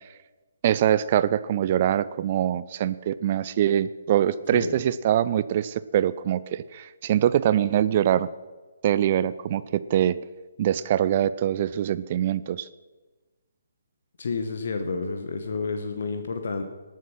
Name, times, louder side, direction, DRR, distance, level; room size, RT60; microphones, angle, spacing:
voice 1, 0.6-8.3 8.8-10.2 10.6-12.7, right 11 dB, 35° right, 16 dB, 0.4 m, -23 dB
voice 2, 14.2-16.6, left 4 dB, 55° left, 7 dB, 1.1 m, -30 dB
19.0 x 7.4 x 5.7 m, 1.3 s
figure-of-eight pair, 135°, 0 cm